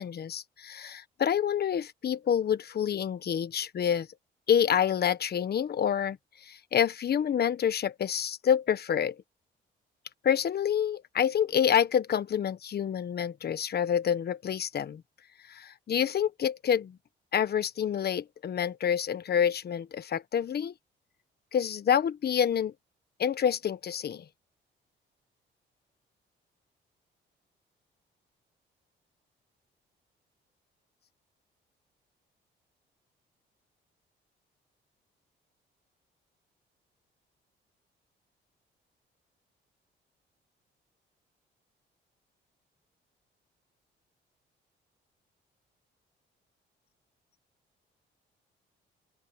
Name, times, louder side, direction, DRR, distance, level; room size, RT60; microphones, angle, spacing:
voice 1, 0.0-4.1 4.5-9.2 10.2-15.0 15.5-17.0 17.3-20.7 21.5-22.7 23.2-24.2, left 8 dB, 55° left, 1.3 m, -28 dB
open air
cardioid pair, 90°, 20 cm